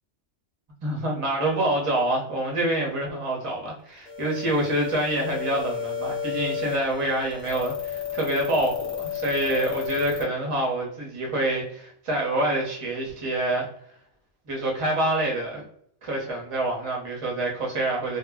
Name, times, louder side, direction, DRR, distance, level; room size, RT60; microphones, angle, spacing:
voice 1, 0.8-13.7 14.5-15.6 16.0-18.2, right 1 dB, 30° right, -1 dB, 0.7 m, -26 dB
sound 1, 4.1-10.2, left 8 dB, 40° left, 0.7 m, -32 dB
2.3 x 2.0 x 3.5 m, 0.67 s
omnidirectional pair, 1.2 m